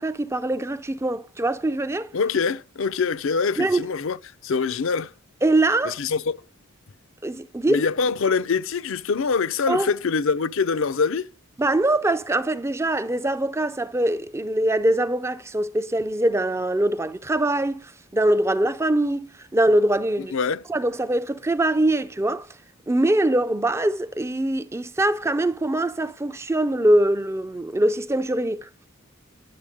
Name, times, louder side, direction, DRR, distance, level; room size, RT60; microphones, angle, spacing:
voice 1, 0.0-2.1 3.6-3.8 5.4-6.0 7.2-7.8 9.7-9.9 11.6-17.8 18.1-19.3 19.5-20.3 20.7-22.5 22.9-28.9, right 1 dB, 10° right, 0.4 m, -23 dB
voice 2, 2.1-4.2 4.4-5.1 5.9-6.4 7.7-11.3 20.2-20.6, left 5 dB, 60° left, 0.5 m, -24 dB
10.5 x 6.9 x 5.1 m
head